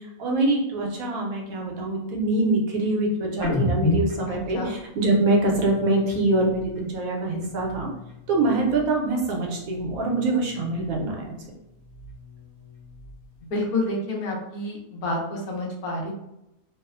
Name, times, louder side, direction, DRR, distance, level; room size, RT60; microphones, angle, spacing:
voice 1, 0.2-7.9 8.3-11.4, right 2 dB, 75° right, 0 dB, 1.1 m, -24 dB
sound 1, 3.4-6.9 7.3-9.1 9.4-11.2 11.6-13.4, left 2 dB, 50° left, 1.3 m, -33 dB
voice 2, 4.3-4.7 13.5-16.1, left 1 dB, 80° left, -2 dB, 1.2 m, -29 dB
3.0 x 2.0 x 2.4 m, 0.88 s
omnidirectional pair, 1.5 m